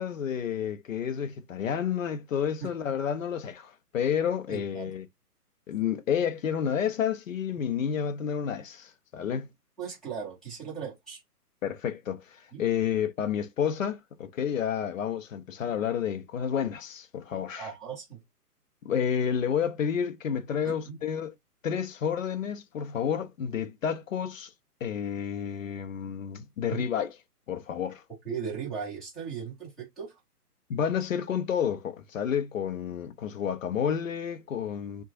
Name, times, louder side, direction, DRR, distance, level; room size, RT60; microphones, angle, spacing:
voice 1, 0.0-5.1 5.7-9.5 11.6-17.7 18.8-21.3 21.6-24.5 24.8-27.2 27.5-28.0 30.7-35.0, left 8 dB, 55° left, 0.6 m, -30 dB
voice 2, 4.5-4.9 9.8-11.2 12.5-12.6 17.6-18.2 20.6-21.0 26.7-26.8 28.2-30.1, right 7 dB, ahead, 0.7 m, -37 dB
2.9 x 2.3 x 2.6 m
figure-of-eight pair, 140°, 46 cm